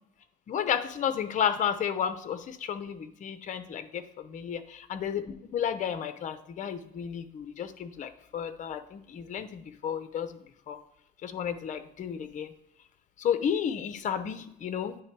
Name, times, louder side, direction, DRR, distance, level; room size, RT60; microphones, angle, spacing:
voice 1, 0.5-4.6 4.9-10.8 11.2-12.5 13.2-15.0, left 8 dB, 45° left, 11 dB, 0.7 m, -32 dB
9.7 x 3.3 x 4.6 m, 0.81 s
cardioid pair, 110°, 17 cm